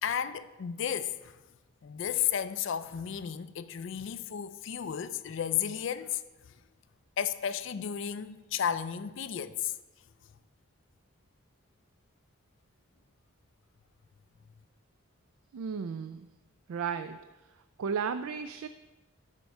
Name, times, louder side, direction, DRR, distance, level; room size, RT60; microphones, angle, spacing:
voice 1, 0.0-1.4 1.8-6.2 7.2-9.7, left 9 dB, 60° left, 0.4 m, -33 dB
voice 2, 15.5-16.3 16.7-17.2 17.8-18.7, right 6 dB, 75° right, 0.3 m, -34 dB
11.5 x 4.5 x 5.3 m
head